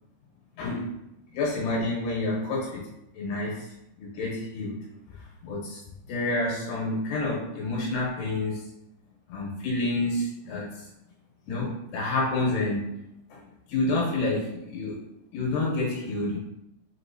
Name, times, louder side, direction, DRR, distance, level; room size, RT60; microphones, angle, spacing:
voice 1, 0.6-0.9 1.3-2.8 3.1-3.7 4.0-4.8 5.4-5.8 6.1-8.7 9.3-10.7 11.5-12.9 13.3-13.4 13.7-15.0 15.3-16.4, left 2 dB, 75° left, -4 dB, 3.1 m, -28 dB
7.0 x 2.8 x 2.6 m, 0.86 s
omnidirectional pair, 5.1 m